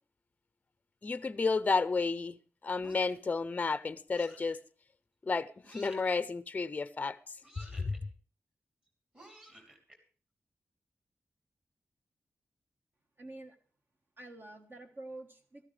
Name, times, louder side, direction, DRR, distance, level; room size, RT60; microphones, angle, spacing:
voice 1, 1.0-4.6 5.2-7.2 7.6-8.0, left 4 dB, 30° left, 0.5 m, -32 dB
sound 1, 2.8-3.3 4.1-4.6 5.6-6.2 7.4-8.0 9.1-10.0, equal, 20° right, 3.0 m, -53 dB
voice 2, 13.2-13.6 14.2-15.7, right 2 dB, 45° right, 1.4 m, -47 dB
16.0 x 14.0 x 3.3 m
wide cardioid pair, 175°, 5 cm